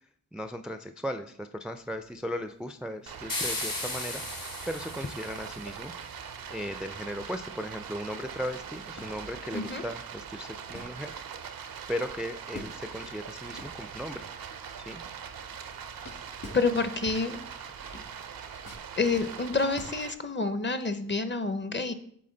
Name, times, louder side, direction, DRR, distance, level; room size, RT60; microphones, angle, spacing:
voice 1, 0.3-4.2 4.6-11.1 11.9-14.3 14.8-15.0, equal, 5° right, 9 dB, 0.4 m, -37 dB
sound 1, 1.7-7.0 7.4-7.5 8.1-14.5 15.0-20.8, left 2 dB, 50° left, 1.8 m, -50 dB
Stream, 3.1-20.1, right 7 dB, 85° right, 0.6 m, -42 dB
sound 2, 3.3-5.7, left 2 dB, 75° left, 1.6 m, -35 dB
voice 2, 9.5-9.8 16.5-17.4 19.0-21.9, left 4 dB, 35° left, 10 dB, 0.7 m, -28 dB
7.7 x 3.9 x 3.8 m, 0.65 s
cardioid pair, 55°, 34 cm